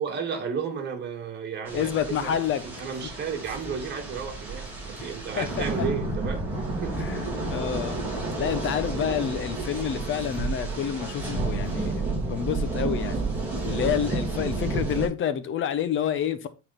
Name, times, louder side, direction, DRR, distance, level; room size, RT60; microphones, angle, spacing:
voice 1, 0.0-2.3 2.6-6.5 6.8-7.1, right 6 dB, 35° right, 2.4 m, -33 dB
voice 2, 1.7-2.6 5.4-5.6 7.0-7.2 7.5-8.0 8.4-13.2 13.6-16.5, left 9 dB, 40° left, 1.1 m, -28 dB
sound 1, 1.7-15.1, right 2 dB, 5° right, 3.4 m, -31 dB
9.3 x 4.2 x 4.3 m
cardioid pair, 140°, 30 cm